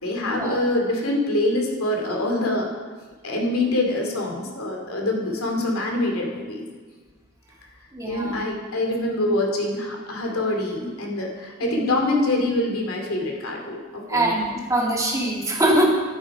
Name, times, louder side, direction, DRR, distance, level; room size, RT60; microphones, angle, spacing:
voice 1, 0.0-2.7 3.2-6.7 8.1-14.4, left 1 dB, 90° left, 1 dB, 2.6 m, -25 dB
voice 2, 7.9-8.4 11.6-11.9 14.1-15.9, right 1 dB, 15° right, -2 dB, 1.9 m, -23 dB
11.0 x 10.5 x 4.9 m, 1.4 s
head